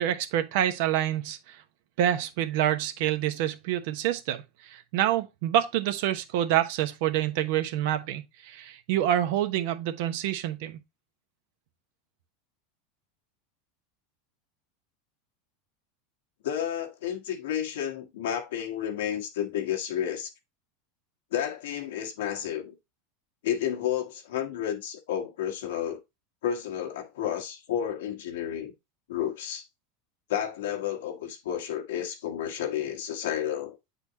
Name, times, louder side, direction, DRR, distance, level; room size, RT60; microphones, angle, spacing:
voice 1, 0.0-1.6 2.0-10.8, right 11 dB, 70° right, 1.0 m, -27 dB
voice 2, 16.4-20.3 21.3-22.7 23.4-26.0 26.4-28.7 29.1-29.7 30.3-33.8, left 10 dB, 80° left, 1.4 m, -31 dB
8.5 x 4.3 x 2.8 m
hypercardioid pair, 105°, 0 cm